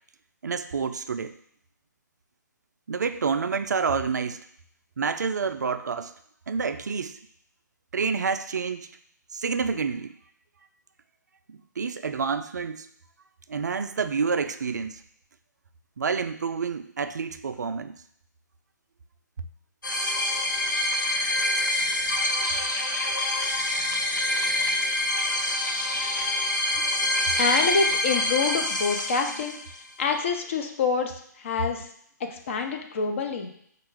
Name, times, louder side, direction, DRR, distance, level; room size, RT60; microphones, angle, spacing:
voice 1, 0.4-1.4 2.9-4.4 5.0-6.1 6.5-7.2 7.9-8.9 9.3-10.1 11.5-12.9 13.5-15.0 16.0-18.0, right 5 dB, 65° right, 10 dB, 0.3 m, -28 dB
sound 1, 19.8-29.8, left 1 dB, 85° left, 0.8 m, -26 dB
voice 2, 27.4-29.6 30.0-31.9 32.2-33.5, left 5 dB, 40° left, 5 dB, 0.6 m, -27 dB
4.4 x 2.4 x 4.7 m, 0.67 s
figure-of-eight pair, 135°, 10 cm